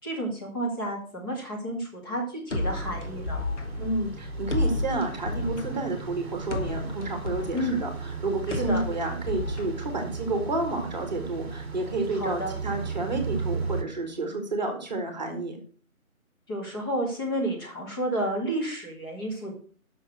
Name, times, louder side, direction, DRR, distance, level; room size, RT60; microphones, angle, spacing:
voice 1, 0.0-3.4 7.5-7.8 8.5-8.8 12.1-12.5 16.5-19.5, right 1 dB, 15° left, -3 dB, 2.2 m, -31 dB
sound 1, 2.5-10.4, left 2 dB, 55° left, 1.7 m, -33 dB
sound 2, 2.6-13.8, right 4 dB, 45° right, 1.3 m, -35 dB
voice 2, 3.8-15.6, right 2 dB, 30° right, 5 dB, 1.7 m, -30 dB
7.1 x 6.3 x 6.2 m, 0.43 s
figure-of-eight pair, 155°, 43 cm